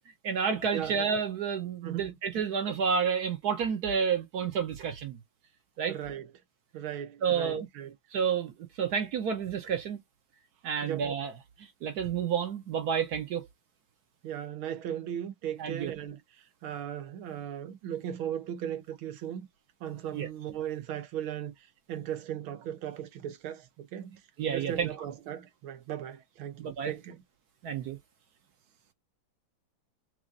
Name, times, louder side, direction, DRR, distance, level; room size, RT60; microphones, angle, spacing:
voice 1, 0.2-5.2 5.8-6.0 7.2-7.7 8.1-8.5 8.8-10.0 10.6-11.3 11.8-13.4 15.6-15.9 20.1-20.3 24.4-24.9 26.6-26.9 27.6-28.0, right 7 dB, 60° right, 1.1 m, -30 dB
voice 2, 5.9-6.3 6.7-7.9 10.8-11.1 14.2-16.2 16.6-19.5 19.8-21.5 21.9-24.1 24.5-27.2, right 10 dB, 85° right, 1.7 m, -37 dB
6.1 x 2.5 x 2.6 m
omnidirectional pair, 2.2 m